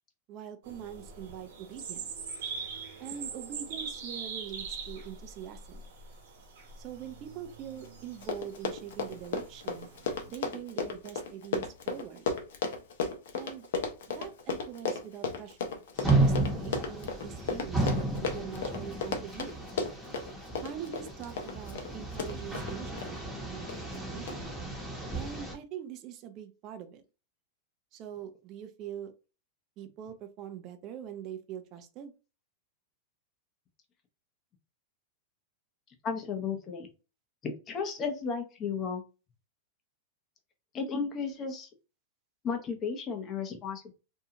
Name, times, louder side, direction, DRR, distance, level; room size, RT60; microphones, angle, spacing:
voice 1, 0.3-2.1 3.0-5.8 6.8-9.9 10.3-12.3 13.3-13.7 14.1-15.7 16.2-19.5 20.6-24.6 25.1-27.0 27.9-29.1 29.8-32.1, right 9 dB, 40° right, 8 dB, 0.5 m, -43 dB
sound 1, 0.6-10.3, right 5 dB, 70° right, 1.1 m, -43 dB
Run, 7.8-7.9 8.1-23.1 23.7-24.0 24.3-24.4, left 5 dB, 75° left, 0.7 m, -34 dB
sound 2, 16.0-25.5, right 2 dB, 5° right, 0.9 m, -32 dB
voice 2, 36.0-36.9 37.4-39.0 40.7-41.7 42.4-43.9, left 5 dB, 30° left, 5 dB, 0.7 m, -34 dB
2.7 x 2.3 x 2.8 m, 0.31 s
hypercardioid pair, 130°, 0 cm